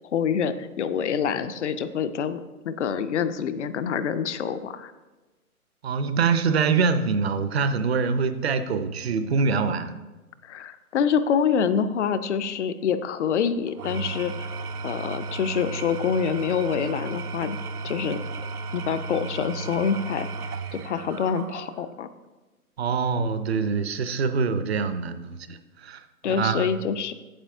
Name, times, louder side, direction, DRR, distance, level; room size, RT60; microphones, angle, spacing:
voice 1, 0.1-2.4 2.7-4.9 10.4-14.5 14.8-17.6 17.8-18.2 18.7-22.1 26.2-27.1, left 7 dB, 55° left, 12 dB, 0.5 m, -26 dB
voice 2, 5.8-9.9 22.8-26.0 26.2-26.7, right 5 dB, 45° right, 10 dB, 0.6 m, -24 dB
Engine / Tools, 13.7-22.0, right 3 dB, 80° right, 0.8 m, -34 dB
8.8 x 7.4 x 3.4 m, 1.2 s
hypercardioid pair, 150°, 44 cm